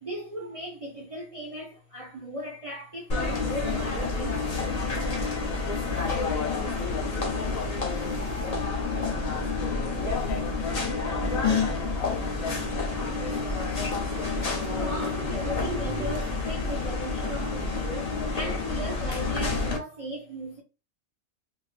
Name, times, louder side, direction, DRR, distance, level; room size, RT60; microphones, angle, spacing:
voice 1, 0.0-4.8 14.5-20.6, equal, 40° right, 0.5 m, -37 dB
sound 1, 3.1-19.8, left 3 dB, 40° left, 0.6 m, -29 dB
voice 2, 6.2-8.2 8.9-13.5, left 5 dB, 85° left, 1.1 m, -39 dB
sound 2, 10.6-16.2, right 2 dB, 60° right, 0.8 m, -42 dB
2.7 x 2.4 x 3.2 m
omnidirectional pair, 1.4 m